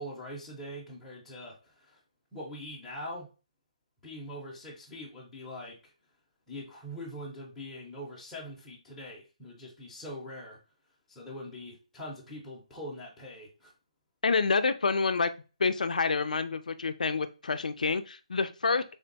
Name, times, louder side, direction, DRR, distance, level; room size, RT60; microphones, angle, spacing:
voice 1, 0.0-2.0 2.3-3.3 4.0-5.9 6.5-10.6 11.1-13.7, equal, 5° left, -5 dB, 0.7 m, -43 dB
voice 2, 14.2-15.3 15.6-18.8, left 4 dB, 90° left, 10 dB, 0.4 m, -28 dB
3.6 x 2.2 x 3.9 m, 0.33 s
hypercardioid pair, 175°, 4 cm